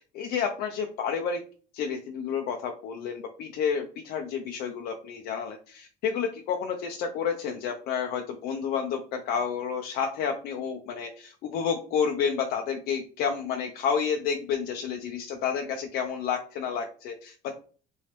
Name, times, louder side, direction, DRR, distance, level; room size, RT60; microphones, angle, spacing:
voice 1, 0.1-1.4 1.7-17.5, left 6 dB, 70° left, 3 dB, 0.5 m, -30 dB
3.1 x 3.0 x 3.2 m, 0.41 s
cardioid pair, 110°, 16 cm